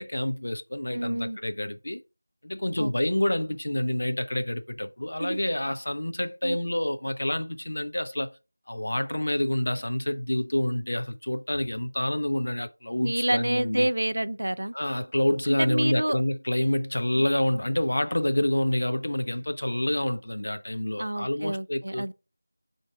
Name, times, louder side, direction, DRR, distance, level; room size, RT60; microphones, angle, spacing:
voice 1, 0.0-2.0 2.4-8.4 8.7-13.9 14.7-22.0, left 1 dB, 55° left, 0.4 m, -28 dB
voice 2, 0.9-1.4 2.8-2.9 5.2-5.4 6.4-6.6 13.0-14.7 15.5-16.2 17.2-17.3 21.0-22.1, right 1 dB, 55° right, 0.3 m, -28 dB
4.3 x 2.6 x 4.5 m
figure-of-eight pair, 170°, 0 cm